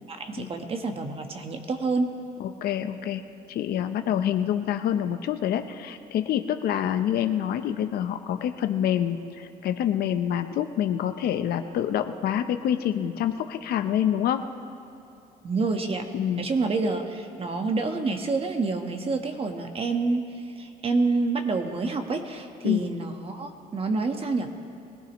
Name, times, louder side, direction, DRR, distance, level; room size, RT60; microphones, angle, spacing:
voice 1, 0.1-2.1 15.4-16.1 16.4-20.3 20.6-24.5, right 3 dB, 35° right, 5 dB, 1.3 m, -28 dB
voice 2, 2.4-3.2 3.5-14.5 16.1-16.4 22.6-22.9, left 10 dB, 65° left, 8 dB, 0.8 m, -27 dB
23.0 x 17.0 x 3.1 m, 2.8 s
cardioid pair, 110°, 17 cm